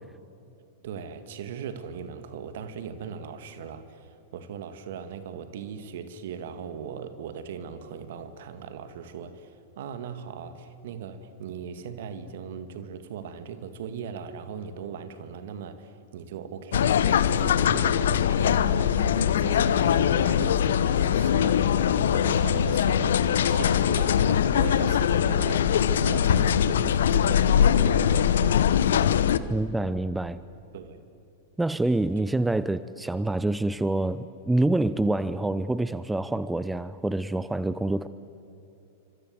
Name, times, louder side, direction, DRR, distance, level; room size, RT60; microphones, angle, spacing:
voice 1, 0.8-28.7 30.7-31.0, right 7 dB, 60° right, 10 dB, 2.4 m, -39 dB
sound 1, 16.7-29.4, left 9 dB, 70° left, 1.0 m, -22 dB
voice 2, 29.5-30.4 31.6-38.1, right 2 dB, 5° right, 15 dB, 0.8 m, -26 dB
28.5 x 25.5 x 8.0 m, 2.7 s
figure-of-eight pair, 95°, 0 cm